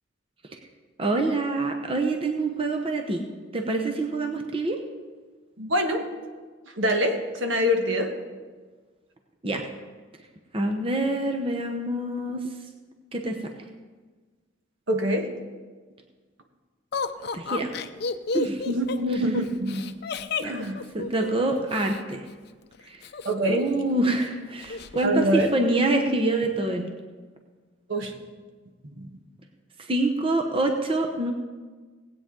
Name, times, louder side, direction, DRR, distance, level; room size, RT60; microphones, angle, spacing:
voice 1, 1.0-3.3 3.5-4.8 9.4-9.7 10.5-12.5 13.1-13.5 17.3-17.7 18.3-18.6 20.4-20.6 20.9-22.2 22.9-23.0 23.5-26.9 29.9-31.3, right 2 dB, 30° right, 3 dB, 0.9 m, -26 dB
voice 2, 5.6-6.1 6.8-8.1 14.9-15.3 18.7-19.9 20.4-20.8 23.2-23.6 25.0-25.5 27.9-28.1 28.8-29.1, equal, 75° right, 4 dB, 1.4 m, -25 dB
Laughter, 16.9-22.0 23.0-23.9 24.2-24.3 24.6-25.1, left 4 dB, 55° left, 0.5 m, -32 dB
18.5 x 8.7 x 3.8 m, 1.4 s
head